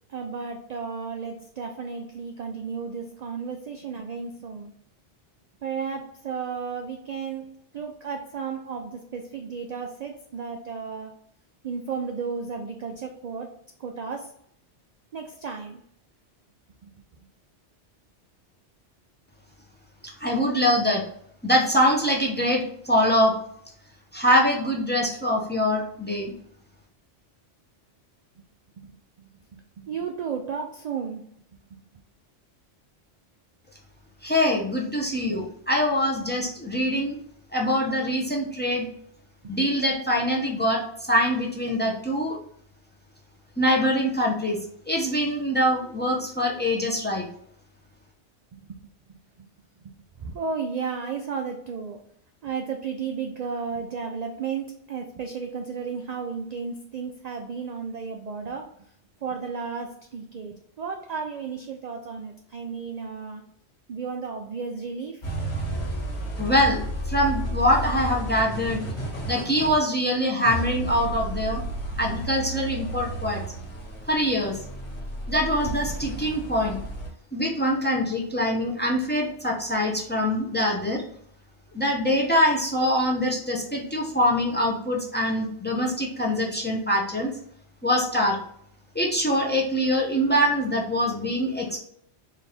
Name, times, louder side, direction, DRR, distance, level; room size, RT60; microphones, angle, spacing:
voice 1, 0.1-4.7 5.6-11.2 11.6-13.5 13.8-14.3 15.1-15.8 16.8-16.9 28.8-31.3 31.7-31.8 39.4-39.6 48.5-48.8 49.1-49.5 49.8-52.1 52.4-58.8 59.2-63.4 63.9-65.2, right 5 dB, 60° right, 3 dB, 0.4 m, -34 dB
voice 2, 20.2-21.0 21.4-23.3 24.1-26.3 34.2-37.2 37.5-38.9 39.5-42.4 43.6-44.6 44.9-47.3 66.4-68.8 69.3-71.6 72.0-73.4 74.1-74.6 75.3-76.8 77.3-81.0 81.7-87.3 87.8-88.4 88.9-91.8, equal, 10° left, -1 dB, 0.7 m, -24 dB
sound 1, 65.2-77.1, right 1 dB, 45° left, 1.7 m, -32 dB
4.2 x 2.6 x 3.4 m, 0.66 s
omnidirectional pair, 1.2 m